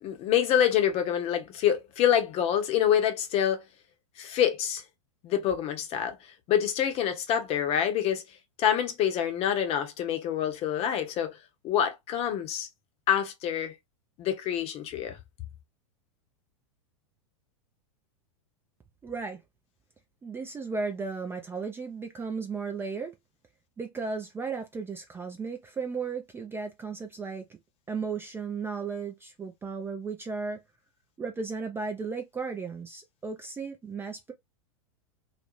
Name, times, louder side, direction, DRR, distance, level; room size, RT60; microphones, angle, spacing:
voice 1, 0.0-3.6 4.2-4.8 5.2-8.2 8.6-11.4 11.6-12.7 13.1-13.7 14.2-15.2, left 9 dB, 40° left, 0.7 m, -26 dB
voice 2, 19.0-19.4 20.2-23.1 23.8-27.6 27.9-30.6 31.2-34.3, right 4 dB, 15° right, 0.4 m, -35 dB
2.4 x 2.0 x 2.9 m
hypercardioid pair, 100°, 17 cm